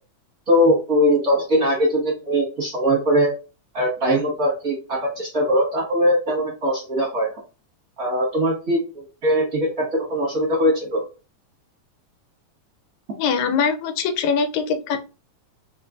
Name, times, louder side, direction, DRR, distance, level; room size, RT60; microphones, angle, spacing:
voice 1, 0.5-3.3 3.7-7.4 8.0-11.0, equal, 45° right, -4 dB, 1.1 m, -21 dB
voice 2, 13.2-15.0, left 6 dB, 75° left, 8 dB, 1.9 m, -22 dB
4.3 x 3.8 x 2.5 m, 0.31 s
omnidirectional pair, 3.5 m